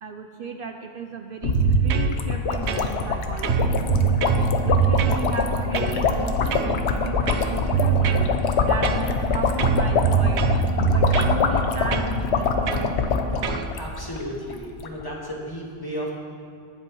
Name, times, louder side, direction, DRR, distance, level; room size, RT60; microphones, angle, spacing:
voice 1, 0.0-3.7 4.6-8.3 8.6-10.4 10.9-12.6, right 5 dB, 60° right, 5 dB, 0.7 m, -35 dB
sound 1, 1.4-14.2 14.5-14.6 14.8-15.0, left 4 dB, 80° left, 1.1 m, -24 dB
sound 2, 1.5-2.1 2.7-3.2 3.4-5.2 5.7-6.0 6.5-6.8 7.3-8.3 8.8-9.3 9.6-11.4 11.9-12.1 12.7-12.9 13.4-13.7, right 8 dB, 90° right, 0.9 m, -23 dB
sound 3, 3.6-13.6, left 2 dB, 45° left, 0.7 m, -36 dB
voice 2, 13.8-16.1, equal, 20° left, -4 dB, 1.8 m, -33 dB
22.5 x 7.7 x 3.0 m, 2.2 s
omnidirectional pair, 1.1 m